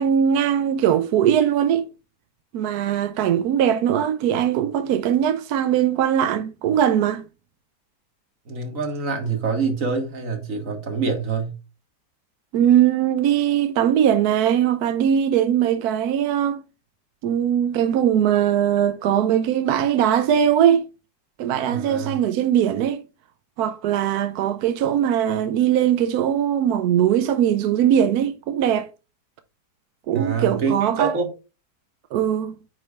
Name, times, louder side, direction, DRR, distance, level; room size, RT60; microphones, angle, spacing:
voice 1, 0.0-1.9 2.5-7.2 12.5-16.6 17.2-20.8 21.4-23.0 23.6-28.9 30.1-31.1 32.1-32.5, right 9 dB, 70° right, 1.0 m, -20 dB
voice 2, 8.5-11.6 21.7-22.2 30.1-31.3, right 5 dB, 50° right, 2.0 m, -26 dB
8.8 x 6.2 x 2.4 m
omnidirectional pair, 1.8 m